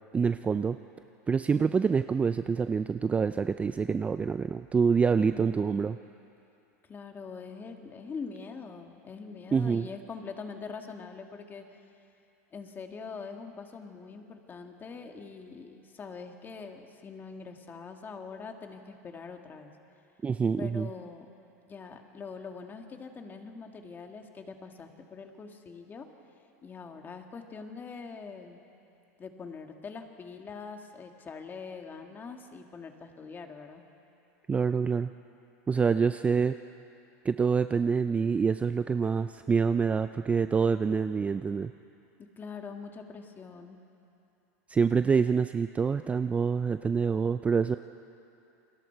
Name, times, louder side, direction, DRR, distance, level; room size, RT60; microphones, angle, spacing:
voice 1, 0.1-0.8 1.3-6.0 9.5-9.9 20.2-20.9 34.5-35.1 35.7-36.5 37.2-41.7 44.7-47.8, right 5 dB, 15° right, 11 dB, 0.4 m, -26 dB
voice 2, 5.2-5.8 6.8-11.7 12.5-19.7 20.6-21.3 21.7-26.1 26.6-28.6 29.2-33.8 42.2-43.8, left 5 dB, 25° left, 4 dB, 1.9 m, -43 dB
29.0 x 21.0 x 4.6 m, 2.7 s
supercardioid pair, 115°, 8 cm